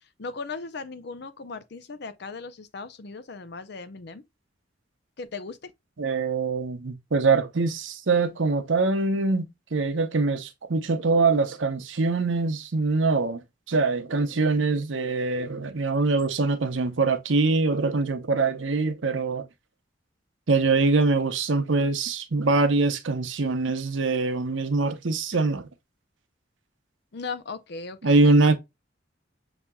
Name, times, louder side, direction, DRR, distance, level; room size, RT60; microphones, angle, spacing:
voice 1, 0.2-4.2 5.2-5.7 27.1-28.6, left 4 dB, 60° left, 0.6 m, -37 dB
voice 2, 6.0-13.4 13.7-19.4 20.5-25.7 28.0-28.6, right 3 dB, 80° right, 0.8 m, -23 dB
7.0 x 2.8 x 2.2 m
head